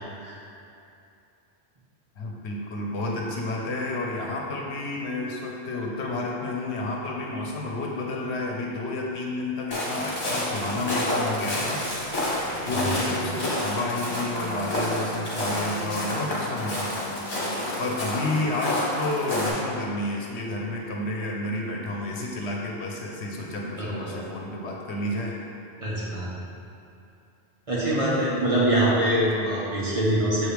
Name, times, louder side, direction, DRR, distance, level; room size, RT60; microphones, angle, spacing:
voice 1, 2.1-11.8 12.3-17.2 17.8-25.4 29.3-29.6, left 2 dB, 80° left, -1 dB, 1.1 m, -30 dB
Walk footsteps, 9.7-19.5, left 1 dB, 50° left, 1.5 m, -29 dB
sound 1, 9.9-19.1, right 1 dB, 55° right, 1.1 m, -41 dB
voice 2, 23.8-24.1 25.8-26.3 27.7-30.5, right 1 dB, 30° right, -8 dB, 1.3 m, -24 dB
6.8 x 4.8 x 3.4 m, 2.7 s
omnidirectional pair, 1.1 m